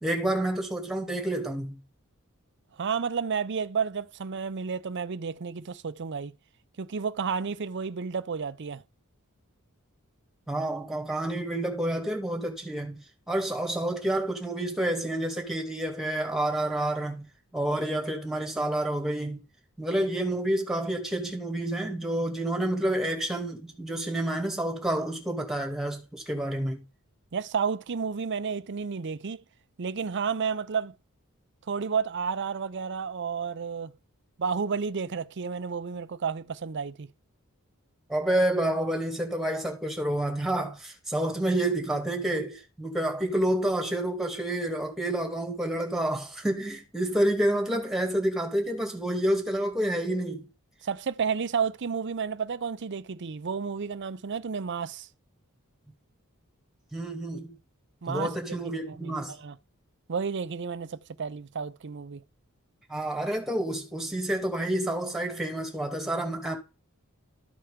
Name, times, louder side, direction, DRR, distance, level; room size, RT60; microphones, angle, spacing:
voice 1, 0.0-1.8 10.5-17.3 17.5-19.4 19.8-26.8 38.1-50.5 56.9-57.5 58.1-59.4 62.9-66.5, right 1 dB, ahead, 2.3 m, -29 dB
voice 2, 2.8-6.3 6.8-8.8 27.3-29.4 29.8-30.9 31.7-33.9 34.4-37.1 50.8-55.1 58.0-58.3 58.8-59.6 60.1-62.2, right 6 dB, 55° right, 0.6 m, -31 dB
13.5 x 4.5 x 5.0 m
head